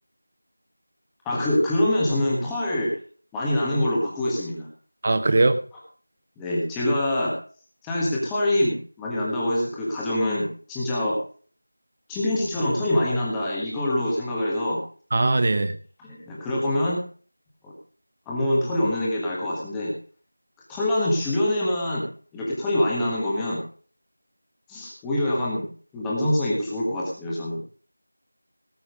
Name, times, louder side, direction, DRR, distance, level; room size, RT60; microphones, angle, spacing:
voice 1, 1.2-2.9 3.3-4.7 6.4-7.3 7.8-11.2 12.1-14.8 16.0-17.0 17.6-17.7 18.3-19.9 20.7-22.0 22.3-23.6 24.7-25.7 25.9-27.6, left 1 dB, 5° left, -5 dB, 1.5 m, -25 dB
voice 2, 5.0-5.6 15.1-15.7, right 2 dB, 20° right, 11 dB, 0.8 m, -20 dB
18.0 x 7.6 x 5.1 m, 0.43 s
figure-of-eight pair, 180°, 0 cm